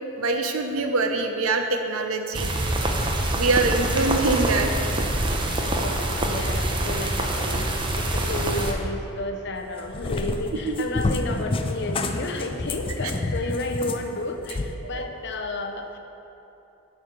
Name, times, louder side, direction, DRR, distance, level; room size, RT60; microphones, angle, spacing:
voice 1, 0.2-2.6 3.3-4.7 10.7-10.9 14.9-15.0, right 3 dB, 90° right, 5 dB, 0.7 m, -24 dB
sound 1, 2.3-8.7, right 1 dB, 25° right, 0.7 m, -25 dB
voice 2, 5.6-16.0, left 2 dB, 55° left, 4 dB, 0.7 m, -32 dB
Cat, 9.6-14.7, left 2 dB, 25° left, 0.4 m, -29 dB
8.5 x 4.8 x 5.9 m, 3.0 s
head